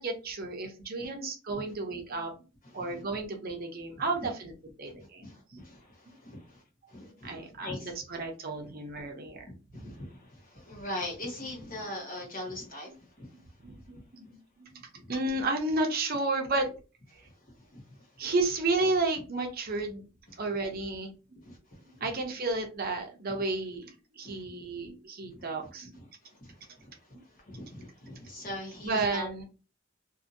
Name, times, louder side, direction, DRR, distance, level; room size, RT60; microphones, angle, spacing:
voice 1, 0.0-2.3 2.7-4.5 4.8-5.6 7.0-9.9 13.6-14.8 15.1-16.8 17.1-17.2 18.2-20.1 20.4-21.1 21.8-25.9 28.8-29.4, right 2 dB, 45° right, 3 dB, 0.7 m, -32 dB
voice 2, 2.6-3.0 4.8-6.6 6.9-7.9 8.6-8.7 9.5-13.4 17.1-17.3 17.7-18.1 21.4-22.1 24.2-24.4 25.2-25.5 26.0-29.4, left 1 dB, 45° left, -1 dB, 1.1 m, -42 dB
2.7 x 2.7 x 2.6 m, 0.33 s
head